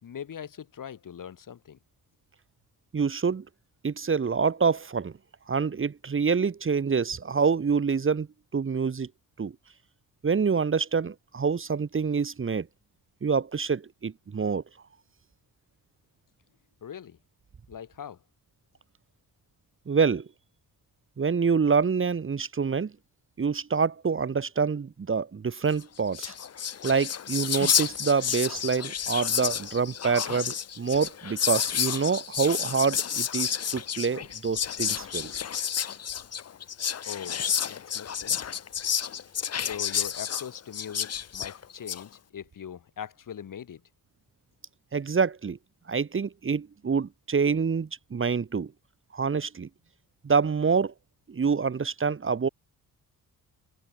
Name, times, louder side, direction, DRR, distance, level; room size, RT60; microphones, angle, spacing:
voice 1, 0.0-1.8 16.8-17.2 17.7-18.2 37.1-38.6 39.5-43.8, left 8 dB, 60° left, 3.6 m, -41 dB
voice 2, 2.9-3.4 3.8-5.1 5.5-8.3 8.5-9.1 9.4-9.5 10.2-12.7 13.2-14.6 19.9-20.3 21.2-22.9 23.4-26.3 26.8-35.3 44.9-45.6 45.9-48.7 49.1-49.7 50.2-50.9 51.3-52.5, right 5 dB, 35° right, 1.5 m, -26 dB
Whispering, 25.8-25.9 26.1-42.0, left 8 dB, 40° left, 1.0 m, -30 dB
cardioid pair, 85°, 37 cm